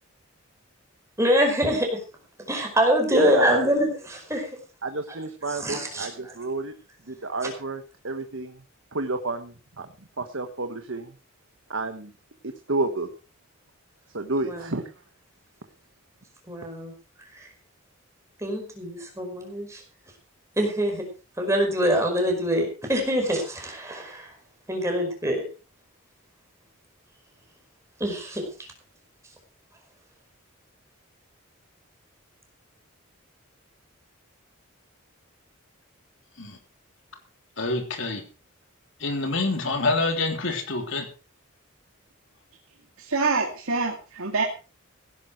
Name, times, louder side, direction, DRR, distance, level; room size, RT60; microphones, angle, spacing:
voice 1, 1.2-2.0 2.4-4.5 5.5-6.3 7.4-7.5 14.4-14.8 16.5-16.9 17.3-17.5 18.4-19.8 20.6-21.1 21.4-24.3 24.7-25.4 28.0-28.7, equal, 15° right, 3 dB, 4.9 m, -25 dB
voice 2, 3.1-3.7 4.8-6.7 7.1-8.6 8.9-9.9 10.2-11.1 11.7-12.1 12.7-13.1 14.1-14.8, right 3 dB, 65° right, 7 dB, 1.3 m, -30 dB
voice 3, 37.6-38.2 39.0-41.1, left 3 dB, 60° left, 5 dB, 3.4 m, -26 dB
voice 4, 43.0-44.4, right 4 dB, 85° right, 0 dB, 2.5 m, -25 dB
16.5 x 11.0 x 4.6 m, 0.33 s
head